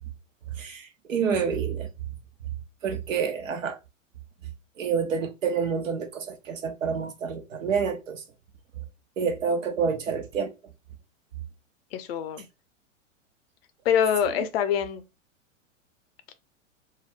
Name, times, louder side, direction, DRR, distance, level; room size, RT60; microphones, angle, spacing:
voice 1, 1.1-1.9 2.8-3.8 4.8-8.2 9.2-10.5, right 6 dB, 75° right, 0.7 m, -28 dB
voice 2, 11.9-12.5 13.8-15.0, left 8 dB, 50° left, 0.5 m, -25 dB
2.3 x 2.0 x 3.2 m
figure-of-eight pair, 100°, 39 cm